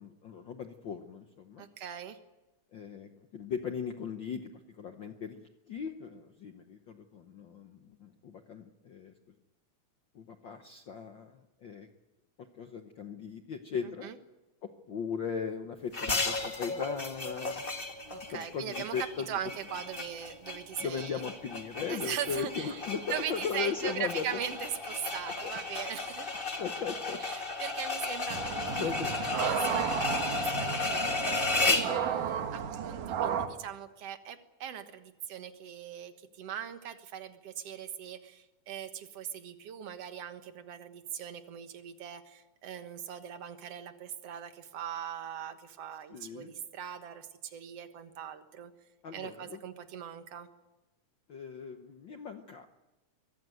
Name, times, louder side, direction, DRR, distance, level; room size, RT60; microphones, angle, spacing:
voice 1, 0.0-1.7 2.7-9.1 10.1-11.9 12.5-14.1 14.6-17.6 18.3-19.3 20.8-24.4 25.4-25.5 26.6-27.2 28.8-29.1 31.6-32.1 46.1-46.5 49.0-49.6 51.3-52.7, left 6 dB, 75° left, 6 dB, 1.1 m, -38 dB
voice 2, 1.6-2.2 13.8-14.2 18.1-19.0 19.3-21.2 21.9-22.8 23.1-26.3 27.2-28.9 29.3-48.7 49.1-50.5, right 9 dB, 55° right, 8 dB, 2.2 m, -40 dB
sound 1, 15.9-32.0, left 3 dB, 25° left, 1.2 m, -34 dB
sound 2, 28.3-33.5, right 8 dB, 85° right, 3.1 m, -33 dB
23.5 x 16.0 x 9.2 m, 1.0 s
omnidirectional pair, 3.6 m